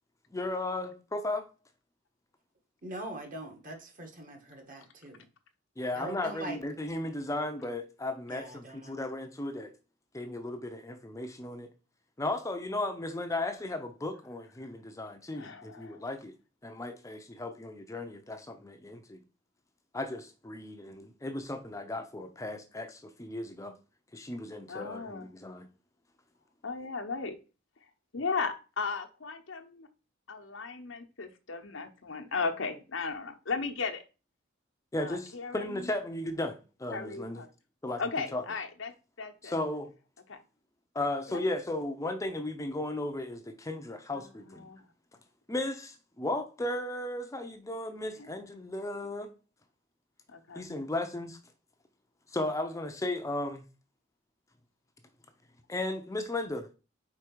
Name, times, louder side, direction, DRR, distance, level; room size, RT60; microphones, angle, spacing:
voice 1, 0.3-1.4 5.8-9.7 10.1-11.7 12.2-16.3 16.6-19.2 19.9-23.7 24.1-25.7 34.9-37.4 37.8-38.0 38.3-38.4 39.4-39.9 40.9-44.6 45.5-49.3 50.6-51.4 52.3-53.6 55.7-56.7, left 2 dB, 15° left, 0.6 m, -35 dB
voice 2, 2.8-5.3 5.9-6.6 8.3-9.0, right 1 dB, 45° right, 1.8 m, -42 dB
voice 3, 15.3-16.0 24.7-25.3 26.6-27.4 28.1-29.9 30.3-34.0 35.0-35.9 36.9-37.5 38.0-38.9 39.2-39.5 40.3-40.4 41.3-41.4 44.1-44.8 48.2-48.3 50.3-50.6, left 4 dB, 90° left, 0.9 m, -36 dB
4.8 x 4.5 x 4.5 m
head